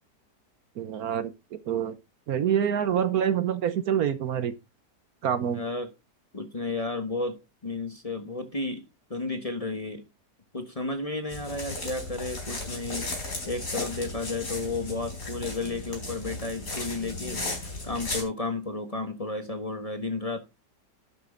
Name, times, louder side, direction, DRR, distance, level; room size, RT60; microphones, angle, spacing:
voice 1, 0.8-1.9 2.3-4.5 5.2-5.6, right 9 dB, 65° right, 1.2 m, -26 dB
voice 2, 5.5-5.9 6.3-8.8 9.1-10.0 10.5-17.4 17.8-20.4, left 3 dB, 25° left, 1.2 m, -32 dB
sound 1, 11.3-18.2, left 2 dB, 50° left, 4.8 m, -35 dB
11.5 x 7.5 x 3.8 m
omnidirectional pair, 1.8 m